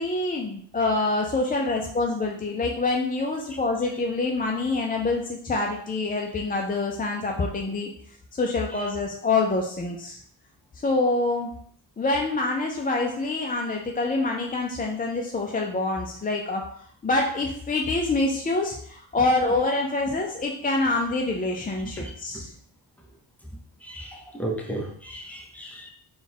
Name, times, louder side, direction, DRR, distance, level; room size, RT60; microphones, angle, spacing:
voice 1, 0.0-7.9 8.4-10.2 10.8-11.5 12.0-16.7 17.0-22.5, left 2 dB, 20° left, 1 dB, 0.4 m, -26 dB
voice 2, 23.8-25.9, right 1 dB, 5° left, -1 dB, 0.8 m, -34 dB
3.8 x 2.4 x 4.3 m, 0.62 s
wide cardioid pair, 95°, 44 cm